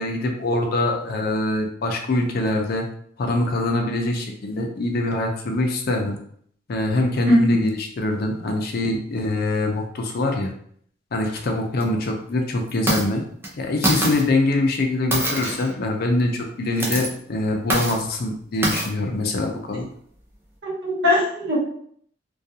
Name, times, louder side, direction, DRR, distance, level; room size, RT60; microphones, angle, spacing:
voice 1, 0.0-2.9 3.2-6.2 6.7-10.5 11.1-13.2 13.6-19.9, left 2 dB, 55° left, 2 dB, 0.4 m, -24 dB
voice 2, 7.3-7.7 20.6-21.6, left 1 dB, 70° right, -7 dB, 1.3 m, -20 dB
sound 1, 11.2-11.4 11.8-11.9 12.7-13.1 13.4-13.5 13.8-14.2 15.1-15.7 16.6-17.1 17.7-18.0 18.6-18.9, right 1 dB, 15° right, 0.5 m, -24 dB
2.3 x 2.3 x 2.7 m, 0.63 s
head